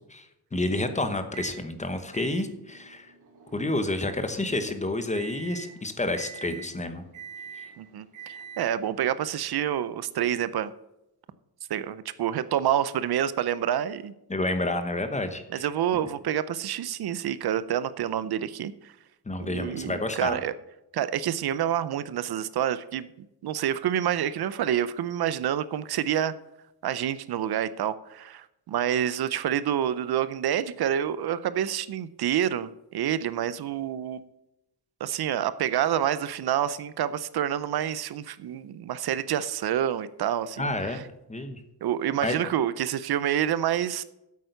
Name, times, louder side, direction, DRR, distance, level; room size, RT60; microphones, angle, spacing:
voice 1, 0.1-3.1 3.5-7.0 14.3-15.6 19.3-20.4 40.6-41.0 41.3-41.6 42.2-42.4, left 2 dB, 20° left, 8 dB, 1.0 m, -29 dB
Microwave oven, 1.3-1.6 2.1-9.0, right 7 dB, 50° right, 2.5 m, -45 dB
voice 2, 7.8-10.7 11.7-14.1 15.5-18.9 19.4-20.5 20.9-23.1 23.4-26.3 26.8-34.3 35.0-41.0 41.8-44.0, right 10 dB, 70° right, 15 dB, 0.6 m, -28 dB
8.8 x 8.3 x 6.7 m, 0.89 s
wide cardioid pair, 145°, 39 cm